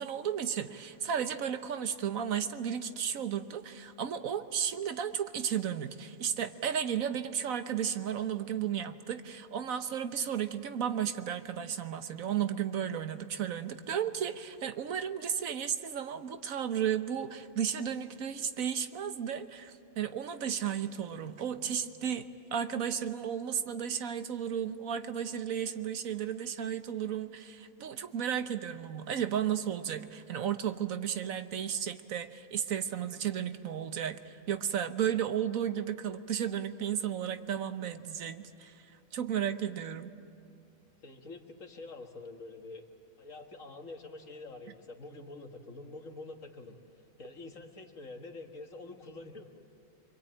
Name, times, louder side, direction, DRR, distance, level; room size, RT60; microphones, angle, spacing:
voice 1, 0.0-38.7 39.1-40.1, right 8 dB, 75° right, 10 dB, 1.4 m, -34 dB
voice 2, 41.0-42.9 43.2-49.5, left 2 dB, 65° left, 3 dB, 2.2 m, -46 dB
25.5 x 24.5 x 8.9 m, 2.4 s
omnidirectional pair, 1.5 m